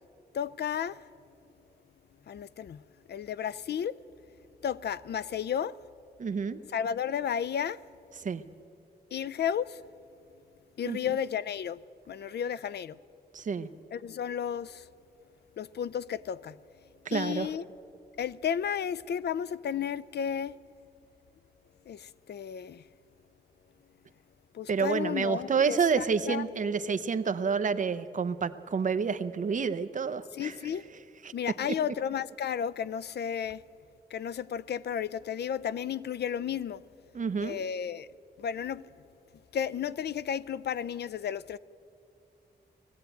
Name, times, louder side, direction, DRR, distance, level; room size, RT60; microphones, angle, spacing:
voice 1, 0.3-1.0 2.3-2.8 3.1-4.0 4.6-5.7 6.7-7.8 9.1-9.8 10.8-11.8 12.1-13.0 13.9-14.9 15.6-16.6 17.1-17.6 18.2-20.6 21.9-22.8 24.5-26.4 30.4-30.8 31.3-33.6 34.1-36.8 37.4-38.1 38.4-38.8 39.5-41.6, left 8 dB, 75° left, 0.4 m, -33 dB
voice 2, 6.2-6.6 8.2-8.4 10.8-11.0 13.3-13.7 17.1-17.5 24.7-30.5 31.2-31.3 37.1-37.6, right 5 dB, 50° right, 0.7 m, -29 dB
19.0 x 15.0 x 9.1 m
wide cardioid pair, 170°, 17 cm